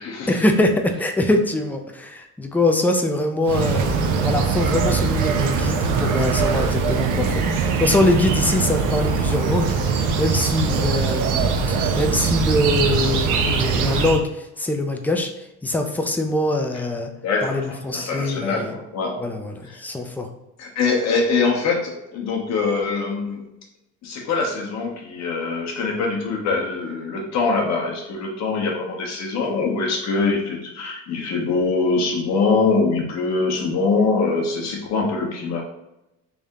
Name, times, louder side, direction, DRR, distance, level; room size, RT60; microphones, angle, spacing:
voice 1, 0.3-15.3 15.6-17.1 17.4-18.8 19.2-20.3, left 1 dB, 5° left, 5 dB, 0.3 m, -23 dB
sound 1, 3.4-14.2, right 5 dB, 70° right, 0.7 m, -22 dB
voice 2, 17.2-19.2 19.6-19.8 20.6-23.4 24.0-35.6, left 4 dB, 55° left, 0 dB, 1.0 m, -23 dB
3.4 x 2.7 x 3.5 m, 0.91 s
cardioid pair, 125°, 32 cm